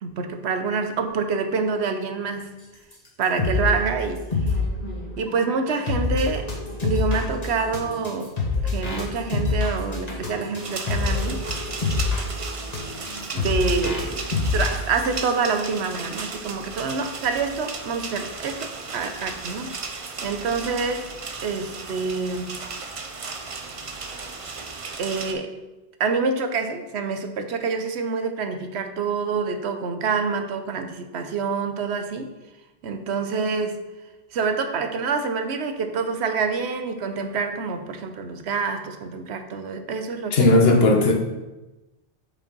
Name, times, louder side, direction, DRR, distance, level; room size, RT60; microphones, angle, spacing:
voice 1, 0.0-2.5 3.2-4.3 5.2-6.5 6.8-8.3 8.6-11.4 13.3-14.2 14.5-21.1 21.4-22.6 25.0-25.6 26.0-32.4 32.8-33.8 34.3-40.7, right 4 dB, 80° right, 7 dB, 1.0 m, -27 dB
sound 1, 2.9-3.0 3.2-3.8 4.2-14.8, left 4 dB, 35° left, 1.6 m, -26 dB
sound 2, 10.6-25.3, right 4 dB, 40° right, 0.6 m, -35 dB
voice 2, 40.3-41.1, left 2 dB, 65° left, 2 dB, 1.3 m, -16 dB
5.4 x 5.1 x 5.3 m, 1.1 s
omnidirectional pair, 1.1 m